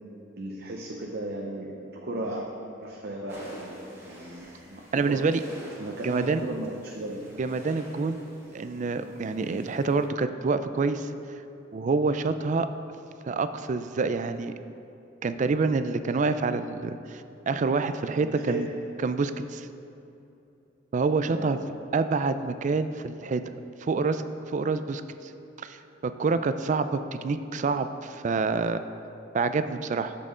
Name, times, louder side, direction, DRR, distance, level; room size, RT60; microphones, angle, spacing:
voice 1, 0.4-2.5 2.8-3.8 4.0-5.3 5.8-7.3 18.2-18.7 21.3-21.7, right 1 dB, 55° right, -1 dB, 0.7 m, -36 dB
sound 1, 3.3-10.1, equal, 15° right, 1.8 m, -47 dB
voice 2, 4.9-5.4 6.0-6.4 7.4-8.2 8.5-11.1 11.7-12.7 13.3-14.5 15.2-18.7 19.0-19.7 20.9-21.6 21.9-23.4 23.8-24.2 24.5-25.3 25.6-25.8 26.0-28.8 29.3-30.1, right 4 dB, 40° right, 11 dB, 0.3 m, -27 dB
11.0 x 7.6 x 3.7 m, 2.8 s
head